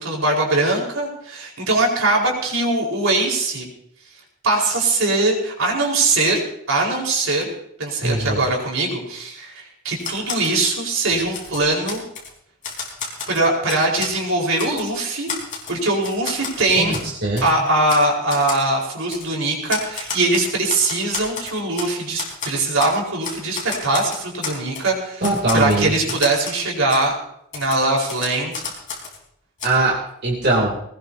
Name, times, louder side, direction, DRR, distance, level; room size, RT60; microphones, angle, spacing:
voice 1, 0.0-3.6 4.4-6.4 6.7-7.5 7.8-12.0 13.3-15.3 15.7-17.0 17.4-25.2 25.5-27.1 27.5-28.6, right 2 dB, 75° right, -1 dB, 4.7 m, -21 dB
voice 2, 8.0-8.4 16.7-17.5 25.2-25.9 29.6-30.8, right 2 dB, 50° right, -4 dB, 3.2 m, -21 dB
Typewriter, 10.0-10.6 11.0-12.3 12.6-14.2 14.6-14.9 15.3-16.6 16.9-17.1 17.4-17.5 17.9-18.0 18.3-18.6 19.1-19.3 19.7-21.9 22.2-23.0 23.2-24.9 25.2-26.6 26.9-27.0 27.5-29.2 29.6-29.7, left 5 dB, 40° left, 4.3 m, -31 dB
20.5 x 19.5 x 2.8 m, 0.72 s
head